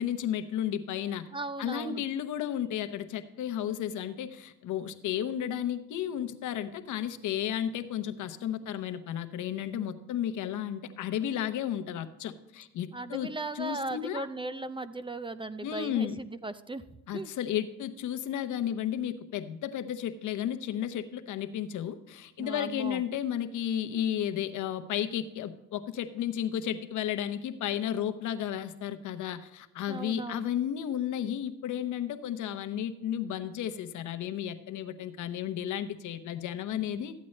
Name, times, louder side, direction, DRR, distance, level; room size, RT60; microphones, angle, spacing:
voice 1, 0.0-1.3 1.6-13.3 13.5-14.3 15.6-16.2 17.1-37.1, left 10 dB, 75° left, 9 dB, 0.9 m, -33 dB
voice 2, 1.3-2.0 12.9-16.8 17.1-17.3 22.4-23.0 29.9-30.5, right 2 dB, 15° right, 13 dB, 0.4 m, -37 dB
13.5 x 8.4 x 3.2 m, 0.95 s
cardioid pair, 90°, 30 cm